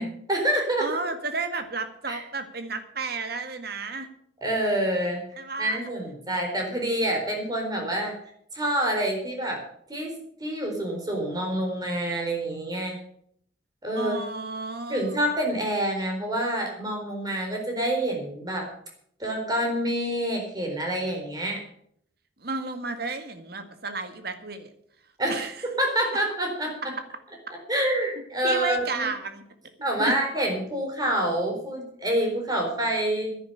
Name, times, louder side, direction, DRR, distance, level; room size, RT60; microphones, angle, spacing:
voice 1, 0.0-0.9 2.1-2.2 4.4-5.2 5.6-8.1 8.5-9.6 9.9-10.2 10.4-12.9 13.8-14.2 14.9-18.7 19.2-21.6 25.2-26.8 27.7-29.1 29.8-33.4, right 1 dB, 20° right, 1 dB, 4.1 m, -27 dB
voice 2, 0.8-4.1 5.4-5.9 13.9-15.2 22.4-24.7 25.3-25.7 28.4-29.4 30.0-30.1, right 3 dB, 55° right, 8 dB, 1.8 m, -32 dB
10.5 x 10.5 x 8.6 m, 0.68 s
head